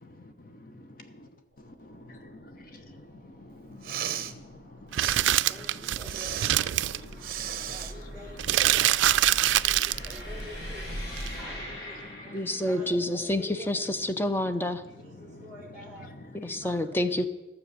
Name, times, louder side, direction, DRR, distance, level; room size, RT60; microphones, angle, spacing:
voice 1, 0.0-1.3 1.6-6.0 6.7-7.8 9.3-10.1 10.9-11.4 11.7-12.7 15.2-15.5 16.0-16.7, left 1 dB, 50° left, 7 dB, 0.9 m, -49 dB
sound 1, 1.5-12.9, equal, 65° left, 4.4 m, -43 dB
Respiratory sounds, 3.7-4.3 4.9-5.2 6.0-6.5 7.2-7.9, right 10 dB, 50° right, 0.7 m, -34 dB
sound 2, 4.9-7.0 8.4-10.2 11.2-11.3, right 13 dB, 85° right, 0.3 m, -24 dB
voice 2, 5.1-10.9 11.3-12.4 12.6-13.9 15.0-16.1 16.6-17.1, equal, 5° right, -3 dB, 1.5 m, -48 dB
voice 3, 12.3-14.8 16.3-17.3, left 1 dB, 10° left, 10 dB, 0.5 m, -28 dB
12.5 x 7.1 x 6.7 m, 1.1 s
head